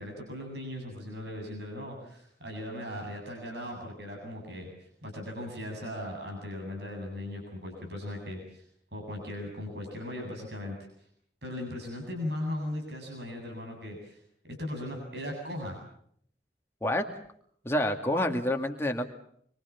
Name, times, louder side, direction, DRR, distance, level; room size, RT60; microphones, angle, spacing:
voice 1, 0.0-4.7 5.0-8.6 8.9-10.8 11.4-15.8, left 1 dB, 75° right, 2 dB, 7.8 m, -38 dB
voice 2, 17.6-19.1, left 1 dB, 15° left, 3 dB, 2.2 m, -28 dB
26.0 x 24.0 x 7.2 m, 0.66 s
head